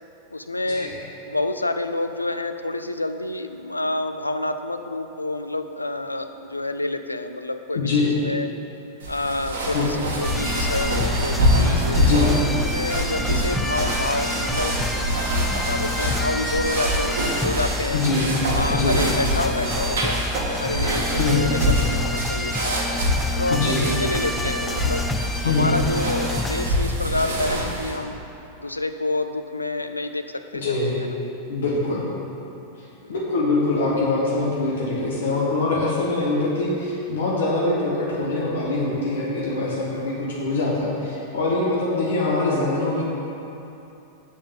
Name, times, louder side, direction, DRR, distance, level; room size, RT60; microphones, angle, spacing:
voice 1, 0.3-0.9 1.2-8.5 9.1-12.0 12.7-15.3 15.7-18.0 18.5-20.2 20.6-22.9 23.3-25.1 25.4-28.2 28.6-31.1 33.0-33.1 39.5-40.2 41.7-41.9, left 2 dB, 85° left, 8 dB, 0.4 m, -28 dB
voice 2, 7.7-8.2 9.7-9.9 11.9-12.4 13.3-13.4 17.9-18.4 18.7-19.0 21.1-21.6 23.5-23.9 25.4-25.8 30.5-31.0 31.5-32.1 33.1-43.1, left 3 dB, 60° left, -5 dB, 1.3 m, -23 dB
sound 1, 9.0-28.0, equal, 60° right, 1.6 m, -25 dB
sound 2, 10.2-26.7, left 2 dB, 10° left, 0.3 m, -30 dB
6.9 x 5.1 x 7.0 m, 2.9 s
figure-of-eight pair, 90°, 0 cm